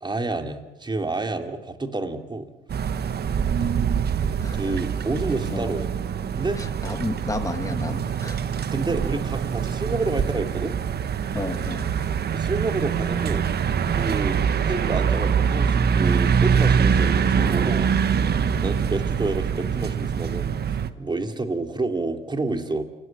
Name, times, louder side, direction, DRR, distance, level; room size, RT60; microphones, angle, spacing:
voice 1, 0.0-2.5 4.5-5.9 6.4-6.6 8.7-10.8 12.3-13.5 13.9-17.9 18.6-22.8, right 2 dB, 20° right, 6 dB, 2.9 m, -29 dB
sound 1, 2.7-20.9, right 7 dB, 55° right, 1.4 m, -24 dB
voice 2, 4.4-4.7 5.5-5.7 6.6-8.4 11.3-11.9, left 2 dB, 15° left, 7 dB, 2.0 m, -32 dB
29.0 x 18.5 x 8.8 m, 1.1 s
cardioid pair, 90°, 20 cm